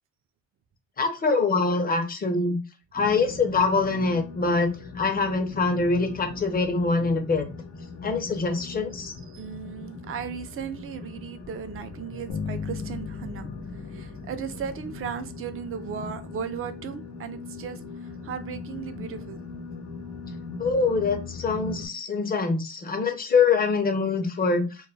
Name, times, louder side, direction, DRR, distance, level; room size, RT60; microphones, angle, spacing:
voice 1, 1.0-2.6 2.9-4.7 4.9-7.5 8.0-9.1 20.6-24.6, left 4 dB, 30° left, 0.6 m, -24 dB
sound 1, 3.0-21.9, left 4 dB, 60° left, 0.9 m, -40 dB
voice 2, 9.3-13.5 13.9-17.8 18.2-19.4, right 7 dB, 45° right, 0.5 m, -36 dB
Bass guitar, 12.3-15.4, left 5 dB, 90° left, 0.7 m, -37 dB
2.2 x 2.1 x 3.1 m
cardioid pair, 90°, 30 cm